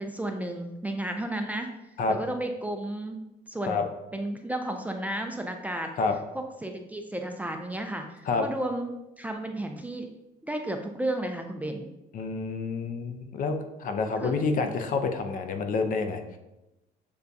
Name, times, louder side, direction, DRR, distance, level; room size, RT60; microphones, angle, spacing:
voice 1, 0.0-1.7 2.1-3.2 3.5-3.8 4.1-5.9 6.3-10.1 10.4-11.9 14.2-14.4 14.6-14.7, right 1 dB, 10° right, 4 dB, 0.3 m, -33 dB
voice 2, 12.1-16.2, left 4 dB, 55° left, 6 dB, 0.5 m, -28 dB
6.7 x 2.3 x 2.5 m, 0.94 s
cardioid pair, 110°, 17 cm